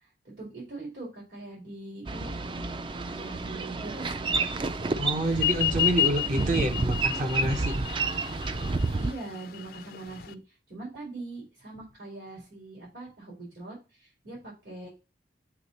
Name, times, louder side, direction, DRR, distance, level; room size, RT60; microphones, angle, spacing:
voice 1, 0.2-2.7 3.1-4.5 6.3-7.0 9.0-10.4 10.7-14.9, right 2 dB, 75° right, 4.3 m, -42 dB
Boat Water vehicle, 2.1-9.1, right 3 dB, 30° right, 0.4 m, -30 dB
voice 2, 5.0-7.8, right 1 dB, 45° right, 0.7 m, -28 dB
sound 1, 5.3-10.3, left 12 dB, 55° left, 0.4 m, -30 dB
8.2 x 3.3 x 4.1 m
head